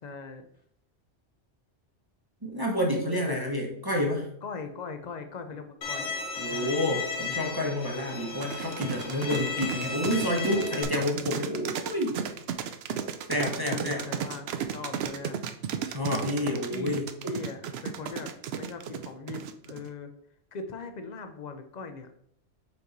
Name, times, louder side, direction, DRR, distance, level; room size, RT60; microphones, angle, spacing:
voice 1, 0.0-0.5 3.3-3.5 4.4-6.8 9.3-9.7 13.7-15.4 16.4-20.1 20.5-22.1, left 4 dB, 45° left, 7 dB, 0.7 m, -40 dB
voice 2, 2.4-4.3 6.4-12.2 13.3-14.1 15.9-17.1, left 1 dB, 20° right, -1 dB, 0.9 m, -29 dB
Bowed string instrument, 5.8-10.8, left 4 dB, 85° left, 1.2 m, -35 dB
sound 1, 8.4-19.9, right 8 dB, 70° right, 0.8 m, -34 dB
5.3 x 4.5 x 3.9 m, 0.69 s
omnidirectional pair, 1.2 m